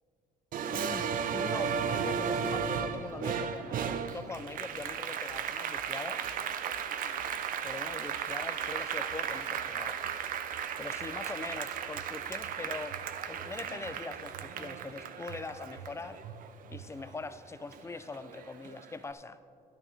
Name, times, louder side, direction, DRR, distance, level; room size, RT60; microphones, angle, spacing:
Applause, 0.5-17.3 17.7-18.9, right 7 dB, 55° right, 0.5 m, -35 dB
voice 1, 0.7-6.4 7.6-10.0 10.8-13.0 13.3-16.2 16.7-19.4, left 3 dB, 15° left, 13 dB, 0.3 m, -42 dB
sound 1, 4.3-5.0 5.3-6.0 6.2-6.9 7.2-7.9 8.1-8.8 9.1-9.8 10.0-10.7 11.0-11.7 12.0-12.6 12.9-13.6 13.9-14.5 14.8-14.9 15.3-15.9 16.2-16.4 16.7-17.2, right 9 dB, 90° right, 0.7 m, -52 dB
12.5 x 11.0 x 3.3 m, 2.7 s
cardioid pair, 110°, 17 cm